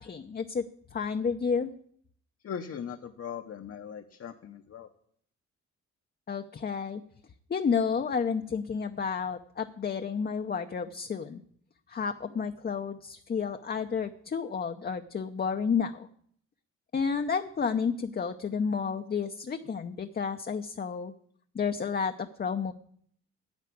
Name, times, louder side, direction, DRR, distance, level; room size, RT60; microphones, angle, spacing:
voice 1, 0.0-1.7 6.3-7.0 7.5-11.4 11.9-16.1 16.9-21.1 21.5-22.7, left 6 dB, 30° left, 7 dB, 0.7 m, -31 dB
voice 2, 2.4-4.9, left 7 dB, 50° left, 5 dB, 1.0 m, -39 dB
10.5 x 8.3 x 8.5 m, 0.65 s
cardioid pair, 90°, 30 cm